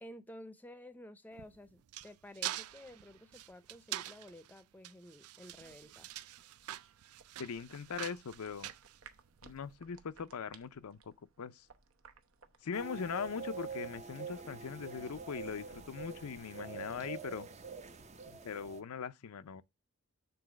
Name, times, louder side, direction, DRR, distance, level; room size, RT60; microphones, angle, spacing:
voice 1, 0.0-6.1, left 1 dB, 10° left, 0.6 m, -52 dB
sound 1, 1.3-9.6, right 13 dB, 90° right, 0.4 m, -45 dB
sound 2, 5.5-12.7, right 5 dB, 70° right, 0.9 m, -61 dB
voice 2, 7.4-8.7 9.4-11.0 11.4-11.7 12.6-17.5 18.3-19.6, left 6 dB, 90° left, 0.5 m, -41 dB
sound 3, 12.7-18.8, right 5 dB, 30° right, 0.6 m, -46 dB
6.9 x 4.0 x 6.2 m
head